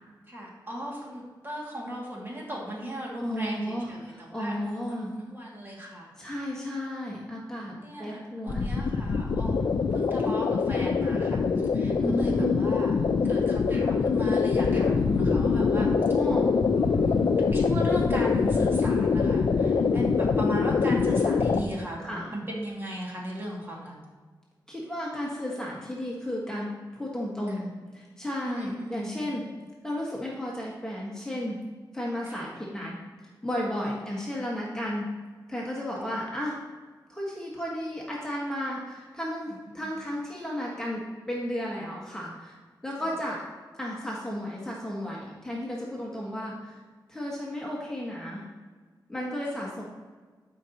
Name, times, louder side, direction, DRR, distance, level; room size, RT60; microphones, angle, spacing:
voice 1, 0.3-6.5 7.8-9.7 9.9-12.9 13.2-15.9 16.7-23.9 28.4-29.3 32.3-32.5 33.8-34.2 39.8-39.9 43.0-43.1 46.0-46.5 49.5-49.6, equal, 30° right, -4 dB, 2.3 m, -37 dB
voice 2, 3.2-5.1 6.2-8.7 12.0-12.6 16.1-16.5 22.0-22.3 24.7-29.4 29.8-31.6 31.9-33.0 33.4-35.1 35.5-36.6 37.1-42.6 42.8-43.4 43.8-46.8 47.1-48.4 49.1-49.8, equal, 10° left, -5 dB, 1.5 m, -33 dB
sound 1, 8.5-21.6, left 5 dB, 80° left, 0.5 m, -24 dB
12.0 x 5.3 x 3.0 m, 1.4 s
wide cardioid pair, 90°, 8 cm